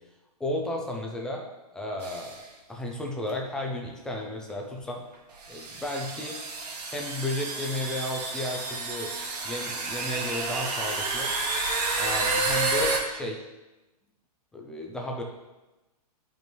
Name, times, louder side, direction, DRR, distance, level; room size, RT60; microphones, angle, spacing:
voice 1, 0.4-1.5 1.7-5.0 5.5-6.4 6.9-9.1 9.4-11.3 12.0-13.4 14.5-15.2, left 1 dB, 5° left, 0 dB, 0.4 m, -33 dB
sound 1, 2.0-2.4 3.3-3.4 4.5-4.6 5.4-13.0, right 3 dB, 90° right, 1.9 m, -30 dB
12.5 x 5.3 x 3.0 m, 1.1 s
hypercardioid pair, 160°, 20 cm